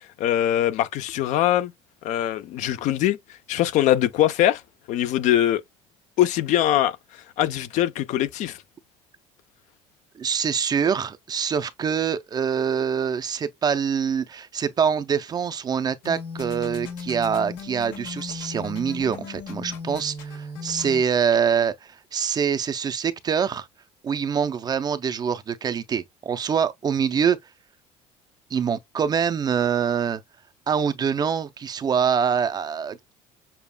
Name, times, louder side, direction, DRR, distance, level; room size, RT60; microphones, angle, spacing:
voice 1, 0.2-1.7 2.0-3.2 3.5-4.6 4.9-5.6 6.2-8.6, left 12 dB, 60° left, 0.6 m, -22 dB
voice 2, 10.2-23.7 24.0-27.4 28.5-30.2 30.7-33.1, right 7 dB, 30° right, 0.5 m, -25 dB
sound 1, 16.0-21.0, left 4 dB, 85° left, 1.7 m, -36 dB
6.9 x 2.3 x 2.2 m
cardioid pair, 120°, 14 cm